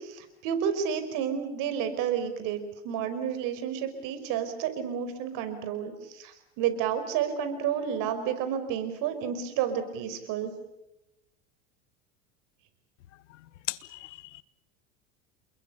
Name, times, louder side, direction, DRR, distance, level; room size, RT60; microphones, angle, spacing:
voice 1, 0.0-10.5, right 8 dB, 60° right, 5.3 m, -31 dB
voice 2, 13.7-14.4, left 17 dB, 85° left, 1.2 m, -37 dB
29.0 x 22.0 x 6.9 m
supercardioid pair, 105°, 35 cm